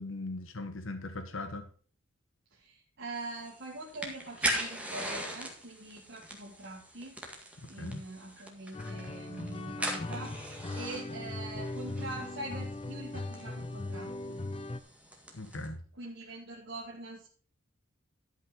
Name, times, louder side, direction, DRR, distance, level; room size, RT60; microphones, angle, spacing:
voice 1, 0.0-1.6 7.6-8.0 15.3-15.8, left 2 dB, 75° left, 9 dB, 1.2 m, -39 dB
voice 2, 2.5-7.2 7.7-14.4 16.0-17.3, right 2 dB, 60° right, -2 dB, 1.7 m, -43 dB
sound 1, 3.2-15.7, right 1 dB, 5° right, 1.8 m, -41 dB
sound 2, 8.7-14.8, left 2 dB, 30° left, 0.5 m, -39 dB
12.0 x 5.5 x 5.2 m, 0.42 s
head